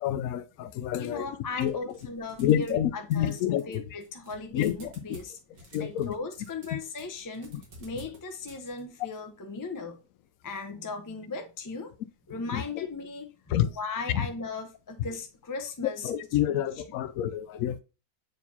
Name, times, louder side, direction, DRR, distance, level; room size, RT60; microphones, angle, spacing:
voice 1, 0.0-1.3 1.6-1.7 2.4-3.6 4.5-4.7 5.7-6.1 12.5-12.6 13.5-13.7 14.1-14.2 16.0-17.8, left 11 dB, 70° left, 0.8 m, -27 dB
voice 2, 1.0-3.4 3.7-5.4 5.8-7.5 7.8-10.0 10.4-11.9 12.3-16.4 16.7-17.0, left 3 dB, 30° left, 0.3 m, -37 dB
sound 1, 1.6-2.9 3.1-9.2, right 1 dB, 85° right, 2.3 m, -52 dB
7.9 x 4.6 x 2.7 m
omnidirectional pair, 1.8 m